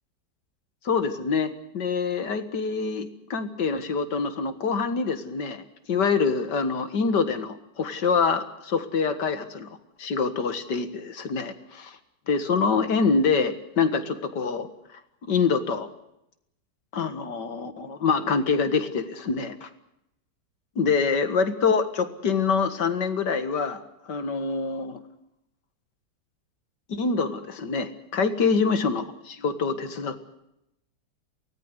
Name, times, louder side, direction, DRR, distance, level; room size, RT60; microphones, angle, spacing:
voice 1, 0.8-9.7 10.0-11.9 12.3-14.7 15.3-15.9 16.9-19.7 20.8-23.8 24.1-25.0 26.9-30.2, left 5 dB, 80° left, 10 dB, 2.4 m, -25 dB
24.0 x 18.5 x 8.1 m, 0.83 s
omnidirectional pair, 1.8 m